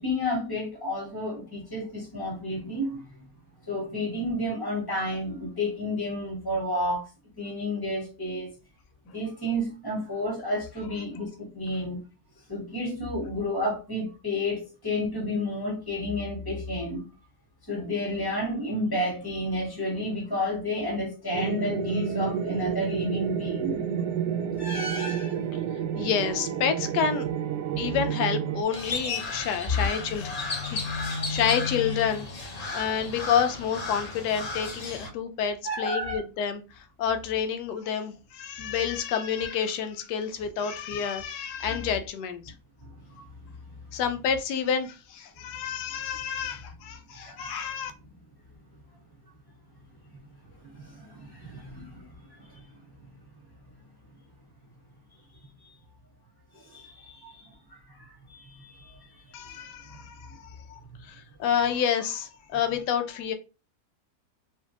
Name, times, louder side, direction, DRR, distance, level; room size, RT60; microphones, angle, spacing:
voice 1, 0.0-3.3 3.7-7.0 7.4-8.5 9.1-12.0 12.5-17.1 17.7-23.8 24.6-25.4 29.7-29.9 35.6-36.2 41.7-41.8 42.8-42.9 47.1-47.6 50.6-52.6 53.0-53.1 55.6-55.7 56.5-57.5 57.9-59.4 59.9-60.0, left 1 dB, 15° left, 1.6 m, -31 dB
sound 1, 21.3-28.6, right 8 dB, 85° right, 1.2 m, -30 dB
voice 2, 25.9-27.3 27.8-36.6 37.0-42.4 43.2-43.3 43.9-47.9 59.3-60.4 60.7-60.8 61.1-63.3, left 7 dB, 90° left, 1.2 m, -29 dB
Crow, 28.7-35.1, left 3 dB, 40° left, 0.5 m, -33 dB
3.3 x 3.0 x 2.8 m
omnidirectional pair, 1.7 m